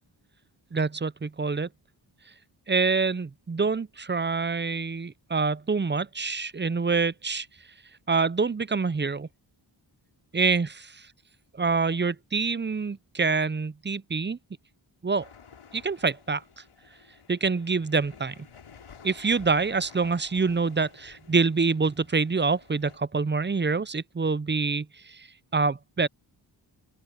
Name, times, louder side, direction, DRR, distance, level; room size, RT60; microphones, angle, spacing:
voice 1, 0.7-1.7 2.7-7.5 8.1-9.3 10.3-11.1 11.5-14.4 15.0-15.3 15.7-16.6 17.3-18.3 19.0-25.3 25.5-26.1, right 4 dB, 25° right, 0.6 m, -26 dB
sound 1, 15.2-23.0, left 6 dB, 85° left, 3.6 m, -52 dB
open air
cardioid pair, 45°, 49 cm